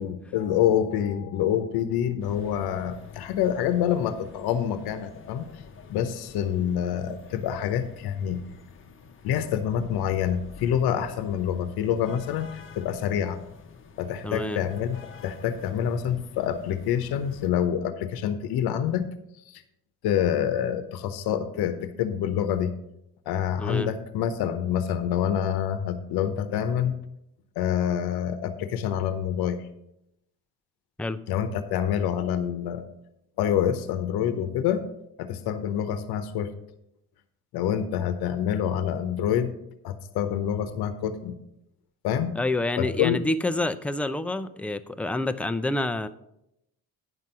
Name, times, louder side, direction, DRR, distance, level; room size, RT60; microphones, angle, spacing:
voice 1, 0.0-5.5 5.9-8.4 9.2-13.4 14.0-19.1 19.5-19.6 20.0-22.7 23.3-27.0 27.6-29.6 31.3-32.9 33.4-34.9 35.2-36.5 37.5-39.5 39.8-41.4 42.0-42.3 42.8-43.2, left 9 dB, 85° left, 10 dB, 0.9 m, -27 dB
sound 1, 2.2-17.5, left 5 dB, 35° left, 0.8 m, -48 dB
voice 2, 14.2-14.6 23.6-23.9 31.0-31.2 42.4-46.1, left 2 dB, 5° left, 10 dB, 0.3 m, -28 dB
9.5 x 6.1 x 5.4 m, 0.82 s
cardioid pair, 125°, 37 cm